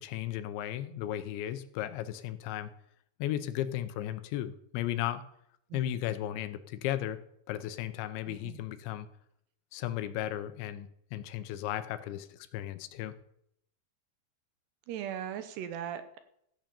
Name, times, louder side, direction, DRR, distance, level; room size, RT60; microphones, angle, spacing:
voice 1, 0.0-2.7 3.2-5.2 5.7-7.2 7.5-9.1 9.7-13.1, left 12 dB, 90° left, 11 dB, 3.1 m, -35 dB
voice 2, 8.3-8.6 14.9-16.2, right 10 dB, 75° right, 10 dB, 2.9 m, -39 dB
14.5 x 9.1 x 7.0 m, 0.73 s
omnidirectional pair, 5.3 m